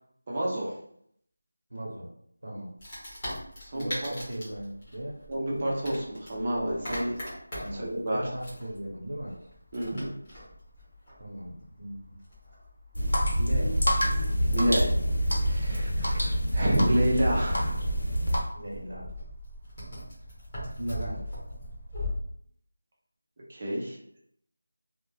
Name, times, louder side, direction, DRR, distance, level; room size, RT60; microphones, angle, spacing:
voice 1, 0.3-0.7 3.6-4.1 5.3-7.1 7.7-8.3 9.7-10.1 14.5-14.9 15.4-17.8 23.5-24.2, right 1 dB, 20° right, -4 dB, 0.4 m, -29 dB
voice 2, 1.7-2.1 2.4-2.7 3.7-5.2 7.6-9.4 11.2-12.2 13.4-13.8 15.7-15.8 18.5-19.1 20.8-21.4, right 1 dB, 75° right, -2 dB, 0.8 m, -37 dB
Wood, 2.8-22.1, left 1 dB, 20° left, 0.9 m, -42 dB
sound 1, 12.9-18.4, equal, 90° left, 1.0 m, -26 dB
2.2 x 2.0 x 3.0 m, 0.68 s
figure-of-eight pair, 180°, 0 cm